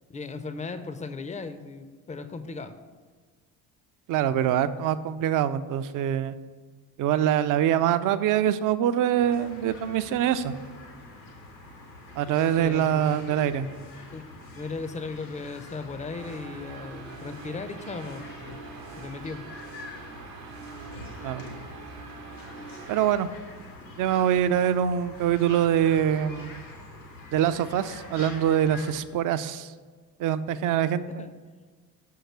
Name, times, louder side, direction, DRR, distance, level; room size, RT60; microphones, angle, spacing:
voice 1, 0.1-2.7 12.6-13.0 14.1-14.2 14.6-18.6 19.0-19.5 31.1-31.3, left 4 dB, 15° left, 11 dB, 0.5 m, -37 dB
voice 2, 4.1-6.4 7.0-10.5 12.2-13.7 21.2-21.4 22.9-23.3 24.0-26.6 27.3-29.7 30.2-31.2, right 10 dB, 40° right, 13 dB, 0.5 m, -24 dB
sound 1, 9.2-28.9, left 2 dB, 90° left, 1.4 m, -45 dB
sound 2, 16.1-23.1, right 5 dB, 75° right, 1.0 m, -45 dB
6.4 x 4.7 x 6.1 m, 1.5 s
figure-of-eight pair, 50°, 50 cm